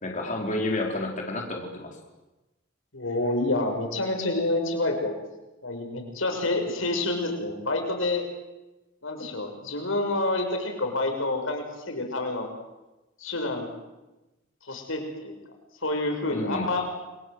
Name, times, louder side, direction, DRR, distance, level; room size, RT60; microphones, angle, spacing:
voice 1, 0.0-1.9 16.3-16.7, left 2 dB, 40° left, 1 dB, 4.5 m, -30 dB
voice 2, 2.9-5.1 5.6-8.3 9.0-12.5 13.2-13.7 14.6-15.4 15.8-16.9, left 2 dB, 90° left, 4 dB, 5.9 m, -28 dB
29.0 x 22.5 x 8.0 m, 1.1 s
head